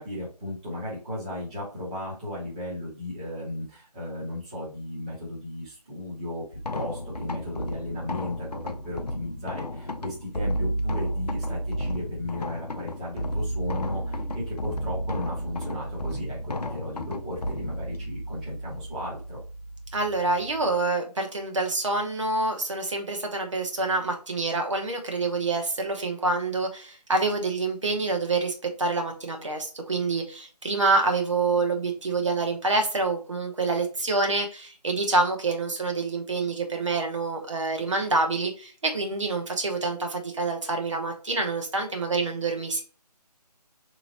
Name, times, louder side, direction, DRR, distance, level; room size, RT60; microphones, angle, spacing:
voice 1, 0.0-6.4 6.7-19.4, left 1 dB, 10° right, -8 dB, 0.7 m, -35 dB
sound 1, 6.5-20.8, equal, 70° left, 0.6 m, -32 dB
voice 2, 19.9-42.8, right 3 dB, 45° right, 3 dB, 0.9 m, -27 dB
3.7 x 3.0 x 2.8 m, 0.36 s
figure-of-eight pair, 155°, 21 cm